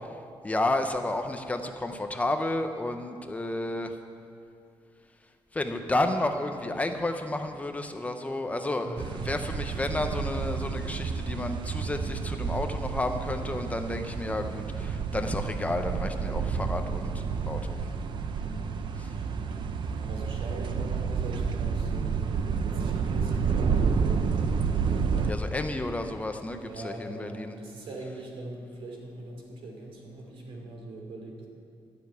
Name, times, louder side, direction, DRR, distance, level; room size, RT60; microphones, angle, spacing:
voice 1, 0.4-3.9 5.5-17.8 19.0-19.1 25.3-27.6, left 2 dB, 15° left, 6 dB, 0.6 m, -31 dB
voice 2, 8.8-9.2 16.8-17.2 18.4-18.8 19.1-19.6 20.0-22.1 22.6-24.3 24.9-25.7 26.6-31.4, right 2 dB, 85° right, 0 dB, 2.7 m, -42 dB
sound 1, 9.0-25.3, right 5 dB, 55° right, 0.6 m, -30 dB
12.5 x 6.9 x 9.4 m, 2.4 s
wide cardioid pair, 175°, 9 cm